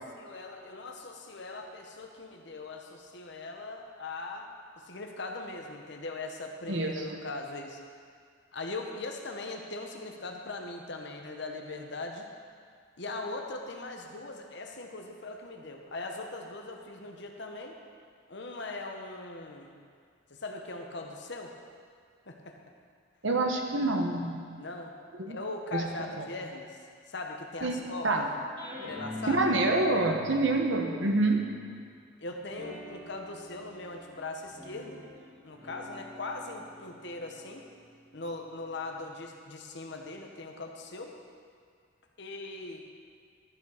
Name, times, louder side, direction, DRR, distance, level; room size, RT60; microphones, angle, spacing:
voice 1, 0.1-4.5 4.8-7.8 8.5-12.3 13.0-17.8 18.3-19.8 20.3-21.5 22.3-22.6 24.6-24.9 25.3-26.8 27.1-28.2 28.8-29.4 32.2-35.0 35.4-37.7 38.1-41.1 42.2-42.8, left 2 dB, 60° left, 2 dB, 1.1 m, -40 dB
voice 2, 6.7-7.2 23.2-24.4 25.2-25.4 25.7-25.8 26.2-26.3 27.6-28.3 29.3-31.4, right 2 dB, 70° right, 2 dB, 1.3 m, -27 dB
sound 1, 28.6-31.9 32.5-39.3, left 1 dB, 25° right, 2.3 m, -46 dB
13.0 x 5.8 x 6.6 m, 2.1 s
head